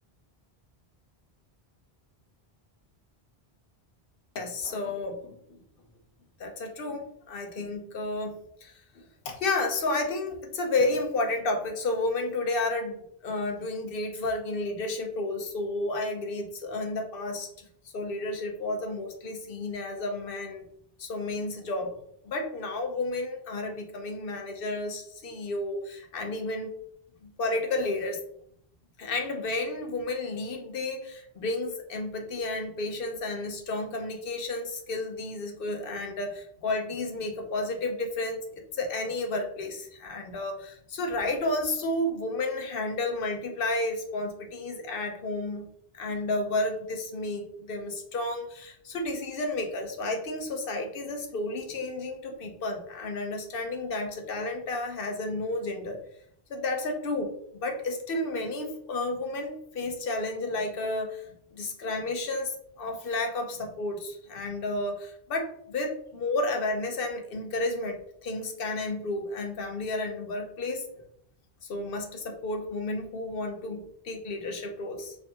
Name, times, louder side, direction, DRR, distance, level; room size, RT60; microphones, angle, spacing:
voice 1, 4.3-5.6 6.4-17.7 17.9-20.6 21.0-21.9 22.2-26.7 27.2-28.2 29.0-45.7 45.9-56.0 56.5-71.0 71.7-75.2, left 2 dB, 65° left, 4 dB, 0.9 m, -32 dB
4.5 x 2.6 x 2.7 m, 0.68 s
omnidirectional pair, 1.0 m